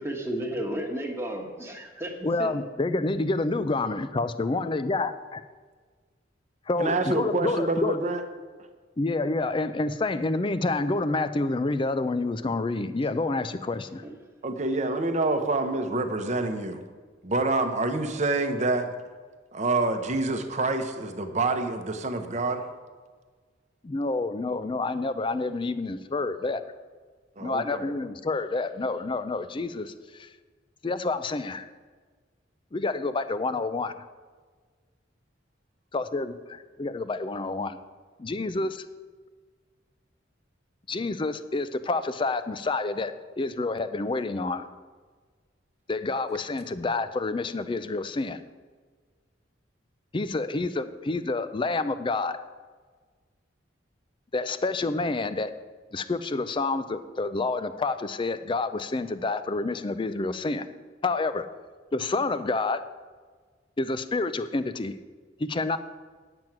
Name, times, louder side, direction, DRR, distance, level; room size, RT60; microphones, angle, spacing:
voice 1, 0.0-2.5, right 1 dB, 15° right, 1 dB, 1.3 m, -33 dB
voice 2, 2.2-5.1 6.7-8.0 9.0-14.0 23.8-26.6 27.4-30.3 30.8-31.7 32.7-33.9 35.9-37.7 38.2-38.8 40.9-44.7 45.9-48.4 50.1-52.4 54.3-55.5 55.9-60.7 61.0-61.4 61.9-62.8 63.8-65.0 65.4-65.8, left 3 dB, 25° left, 12 dB, 0.4 m, -28 dB
voice 3, 6.8-8.2 14.4-16.8 17.2-18.9 19.5-22.6 27.4-27.8, right 2 dB, 40° right, 7 dB, 0.8 m, -27 dB
9.0 x 7.8 x 5.9 m, 1.5 s
head